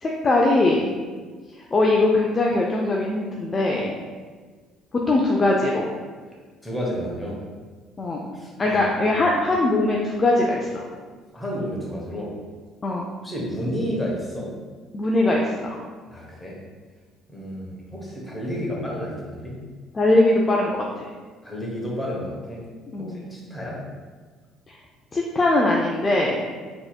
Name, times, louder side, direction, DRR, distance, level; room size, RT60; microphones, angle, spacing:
voice 1, 0.0-0.9 1.5-3.9 4.9-5.9 8.0-8.3 8.6-10.8 12.8-13.1 14.9-15.8 19.9-21.0 22.9-23.2 24.7-24.8 25.1-26.4, left 2 dB, 35° left, -1 dB, 0.4 m, -21 dB
voice 2, 6.6-7.4 8.3-8.8 11.3-12.3 13.2-14.5 16.1-16.6 17.3-19.5 21.4-22.6 23.0-23.8, equal, 15° left, -3 dB, 1.2 m, -31 dB
4.0 x 2.9 x 2.3 m, 1.5 s
hypercardioid pair, 60°, 0 cm